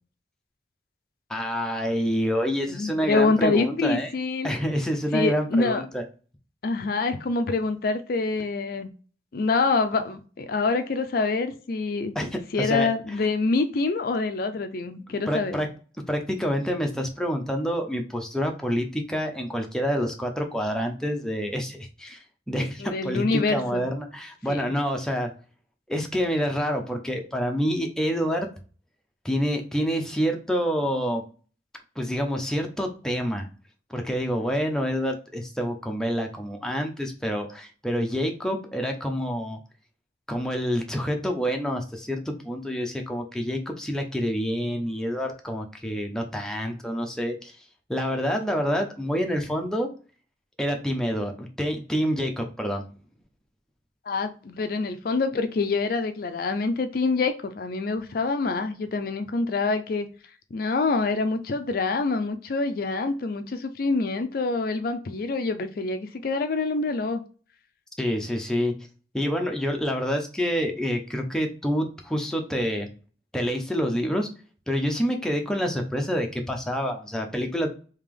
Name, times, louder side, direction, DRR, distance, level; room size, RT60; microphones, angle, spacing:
voice 1, 1.3-4.1 4.4-6.0 12.1-12.9 15.3-15.7 16.1-25.3 25.9-28.5 29.2-31.3 32.0-33.5 33.9-39.6 40.3-47.6 47.9-49.9 50.6-52.8 68.0-68.8 69.1-72.9 73.3-74.3 74.7-77.7, equal, 5° left, 2 dB, 0.6 m, -27 dB
voice 2, 2.7-4.5 5.1-5.8 6.6-8.9 9.3-12.1 12.5-15.6 22.8-23.8 24.5-24.7 54.1-60.1 60.5-67.2, left 3 dB, 55° left, 9 dB, 0.4 m, -26 dB
3.3 x 2.9 x 3.6 m, 0.37 s
head